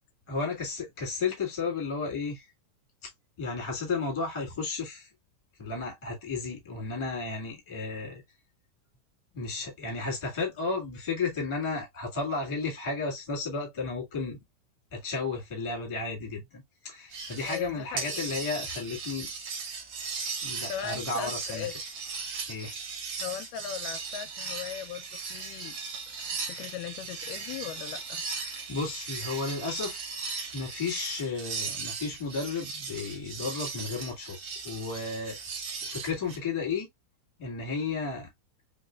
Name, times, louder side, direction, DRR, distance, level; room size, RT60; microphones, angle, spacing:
voice 1, 0.3-2.5 3.0-3.1 3.4-5.1 5.6-8.2 9.3-14.4 14.9-19.3 20.4-21.7 22.5-22.7 28.7-30.0 30.5-34.4 34.6-35.4 35.8-36.9 37.4-38.3, left 4 dB, 15° left, 1.1 m, -33 dB
sound 1, 17.1-17.7 18.0-36.4, right 5 dB, 70° right, 1.1 m, -37 dB
voice 2, 17.4-18.2 20.7-21.7 23.2-25.8 26.1-28.2, left 10 dB, 85° left, 2.2 m, -38 dB
4.8 x 3.1 x 2.3 m
omnidirectional pair, 3.7 m